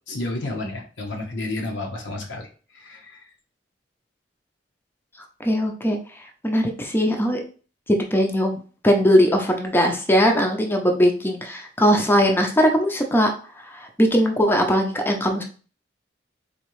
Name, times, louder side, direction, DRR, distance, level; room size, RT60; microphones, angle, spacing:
voice 1, 0.1-3.3, left 2 dB, 85° left, 1 dB, 1.0 m, -31 dB
voice 2, 5.4-6.0 6.4-7.4 7.9-15.4, equal, 10° left, 2 dB, 0.6 m, -20 dB
4.2 x 2.8 x 3.1 m, 0.38 s
head